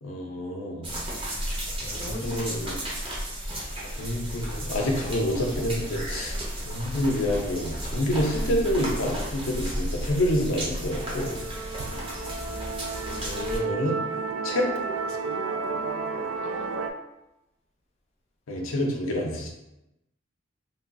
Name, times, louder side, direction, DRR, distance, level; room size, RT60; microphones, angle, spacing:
voice 1, 0.0-0.8 1.8-2.8 3.8-6.4 6.7-11.4 13.2-14.0 14.4-14.7 18.5-19.5, left 1 dB, 85° left, 0 dB, 0.5 m, -28 dB
sound 1, 0.8-13.6, equal, 25° right, 0.7 m, -33 dB
voice 2, 1.9-3.1 16.4-16.8, left 2 dB, 30° left, -3 dB, 0.6 m, -40 dB
Musical instrument, 10.9-16.9, right 4 dB, 85° right, 0.3 m, -32 dB
3.2 x 2.3 x 2.5 m, 0.92 s
head